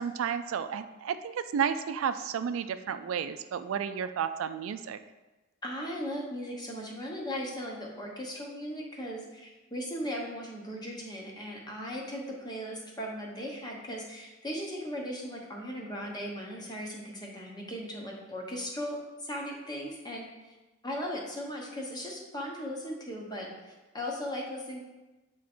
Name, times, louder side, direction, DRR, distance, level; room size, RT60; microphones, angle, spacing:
voice 1, 0.0-5.0, right 7 dB, 80° right, 10 dB, 0.3 m, -32 dB
voice 2, 5.6-20.3 20.8-24.9, equal, 20° left, -1 dB, 1.0 m, -38 dB
7.8 x 3.1 x 4.3 m, 1.1 s
head